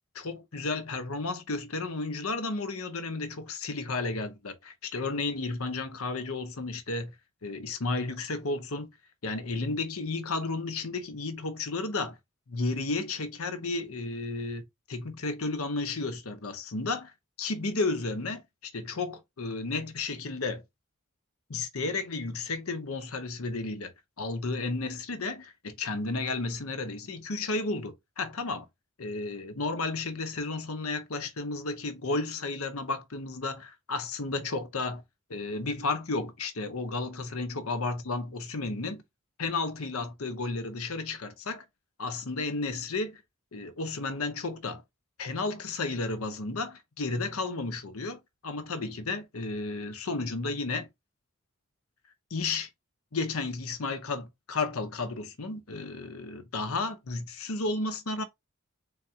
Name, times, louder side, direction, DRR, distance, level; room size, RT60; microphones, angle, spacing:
voice 1, 0.1-7.1 7.4-8.9 9.2-12.2 12.5-17.1 17.4-20.6 21.5-23.9 24.2-28.7 29.0-35.0 35.3-39.0 39.4-41.6 42.0-43.2 43.5-44.8 45.2-50.9 52.3-52.7 53.1-58.2, left 3 dB, 90° left, 0.9 m, -33 dB
3.9 x 3.5 x 2.8 m
head